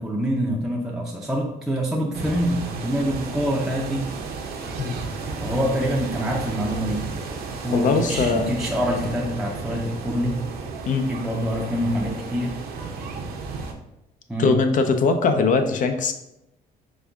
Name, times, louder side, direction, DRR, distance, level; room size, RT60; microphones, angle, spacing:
voice 1, 0.0-4.1 5.4-7.1 7.6-10.4 11.1-12.6 14.3-14.5, equal, ahead, -3 dB, 0.5 m, -25 dB
sound 1, 2.1-13.7, right 4 dB, 65° right, 0.7 m, -33 dB
voice 2, 7.7-8.5 10.9-11.1 14.4-16.1, left 4 dB, 50° left, 6 dB, 0.5 m, -21 dB
5.3 x 3.4 x 2.4 m, 0.89 s
cardioid pair, 110°, 17 cm